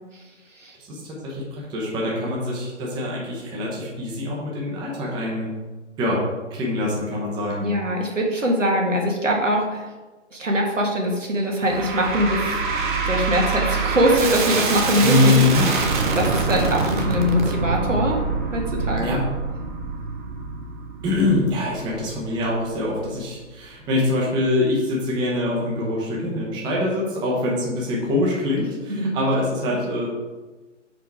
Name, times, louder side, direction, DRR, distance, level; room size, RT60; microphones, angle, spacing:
voice 1, 0.1-0.7 7.6-9.9 10.3-12.6 13.0-18.2 18.5-19.2 28.9-29.8, equal, 80° right, 0 dB, 1.7 m, -23 dB
voice 2, 0.8-5.5 6.0-6.2 6.5-7.7 15.0-15.6 19.0-19.2 21.0-30.1, left 2 dB, 10° right, -3 dB, 1.0 m, -24 dB
sound 1, 11.6-22.9, right 4 dB, 40° right, 1.0 m, -25 dB
5.1 x 4.9 x 4.8 m, 1.2 s
figure-of-eight pair, 130°, 37 cm